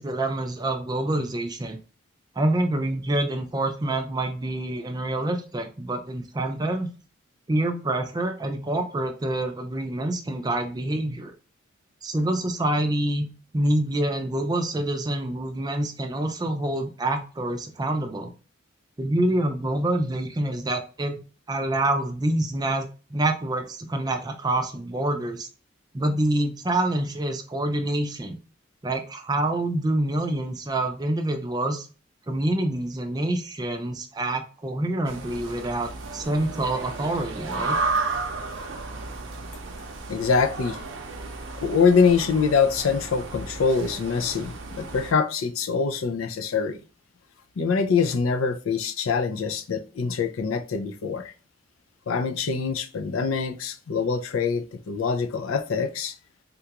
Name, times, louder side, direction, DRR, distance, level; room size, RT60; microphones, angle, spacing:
voice 1, 0.0-1.8 2.4-6.9 7.5-11.3 12.0-13.3 13.5-18.3 19.0-21.2 21.5-22.9 23.1-25.5 25.9-28.4 28.8-31.9 32.3-37.8, right 1 dB, 20° right, 0.4 m, -26 dB
sound 1, 35.0-45.1, right 3 dB, 70° right, 0.6 m, -33 dB
voice 2, 40.1-40.8 41.6-46.8 47.6-51.3 52.1-56.1, left 5 dB, 85° left, 0.4 m, -24 dB
3.6 x 2.3 x 2.9 m
head